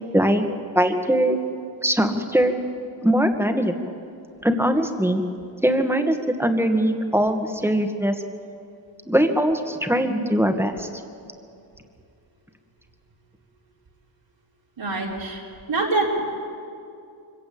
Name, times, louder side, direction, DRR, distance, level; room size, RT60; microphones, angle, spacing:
voice 1, 0.1-0.5 0.7-1.4 1.8-2.5 3.0-3.9 4.4-5.2 5.6-8.2 9.1-10.9, equal, 5° right, 5 dB, 2.0 m, -21 dB
voice 2, 14.8-15.4 15.7-16.2, right 2 dB, 70° right, -5 dB, 4.1 m, -24 dB
24.0 x 15.5 x 8.8 m, 2.5 s
cardioid pair, 65°, 46 cm